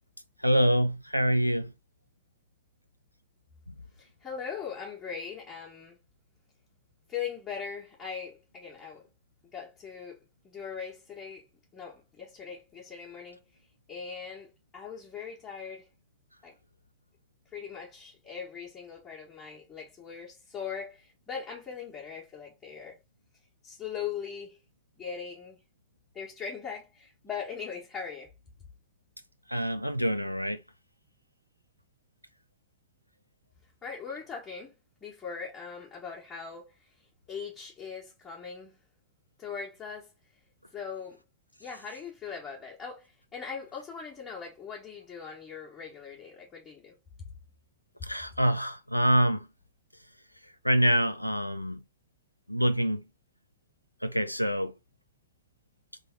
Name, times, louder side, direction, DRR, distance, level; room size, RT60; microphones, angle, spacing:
voice 1, 0.4-1.7 29.5-30.6 48.0-49.4 50.6-51.8 52.5-53.0 54.0-54.7, equal, 90° left, 0.3 m, -26 dB
voice 2, 4.0-6.0 7.1-9.0 9.5-11.5 11.7-13.4 13.9-15.9 16.4-16.5 17.5-23.0 23.6-24.6 25.0-25.6 26.1-28.3 33.8-34.7 35.0-38.8 39.4-40.1 40.7-41.2 41.6-47.3 48.0-48.1, left 6 dB, 20° left, 1.5 m, -40 dB
3.4 x 3.4 x 3.7 m
figure-of-eight pair, 90°, 0 cm